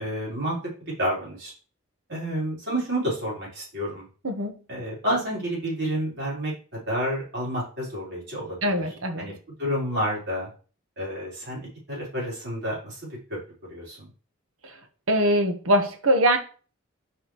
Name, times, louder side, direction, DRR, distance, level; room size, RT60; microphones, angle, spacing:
voice 1, 0.0-1.5 2.1-4.1 4.7-8.8 9.2-9.3 9.6-10.5 11.0-13.4 13.7-14.1, equal, 55° right, -5 dB, 4.1 m, -30 dB
voice 2, 8.6-9.3 14.6-14.8 15.1-16.4, equal, 85° right, 6 dB, 1.3 m, -22 dB
7.9 x 5.0 x 3.2 m, 0.37 s
head